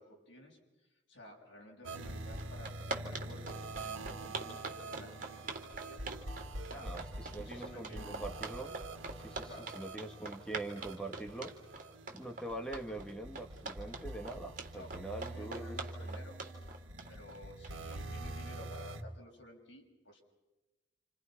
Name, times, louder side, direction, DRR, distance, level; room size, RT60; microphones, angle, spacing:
voice 1, 0.0-5.5 5.8-6.1 6.7-6.9 7.3-8.2 9.4-9.7 14.7-16.4 17.1-20.2, left 1 dB, 65° left, 0 dB, 6.7 m, -53 dB
sound 1, 1.8-19.0, right 2 dB, 90° right, 1.9 m, -45 dB
sound 2, 2.0-2.1 2.4-18.0, right 3 dB, 45° right, 3.6 m, -43 dB
voice 2, 6.7-8.7 9.2-11.5 12.1-15.8, right 2 dB, 5° left, 4 dB, 2.1 m, -43 dB
30.0 x 29.0 x 6.1 m, 1.1 s
head